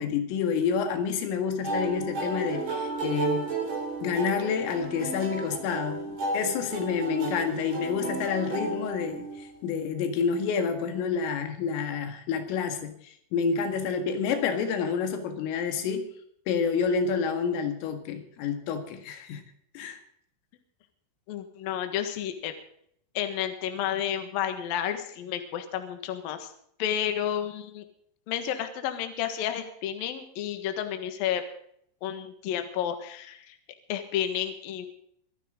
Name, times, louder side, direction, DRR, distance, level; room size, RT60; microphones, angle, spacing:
voice 1, 0.0-3.5 4.0-16.1 16.5-19.4 19.7-20.0, left 6 dB, 85° left, 7 dB, 4.4 m, -29 dB
sound 1, 1.6-9.6, right 3 dB, 40° right, 3.9 m, -33 dB
voice 2, 21.3-22.5 23.1-26.5 26.8-27.8 28.3-31.4 32.0-33.6 33.9-34.9, left 10 dB, 60° left, 7 dB, 2.7 m, -31 dB
25.0 x 9.9 x 3.9 m, 0.66 s
omnidirectional pair, 5.7 m